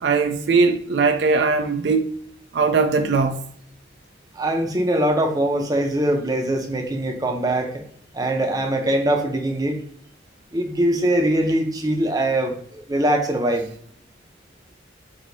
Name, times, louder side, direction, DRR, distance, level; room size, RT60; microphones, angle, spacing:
voice 1, 0.0-2.1 2.5-3.4, right 4 dB, 60° right, 0.4 m, -19 dB
voice 2, 4.3-7.7 8.1-9.8 10.5-13.7, right 1 dB, 20° right, 0.6 m, -22 dB
4.7 x 2.7 x 2.6 m
head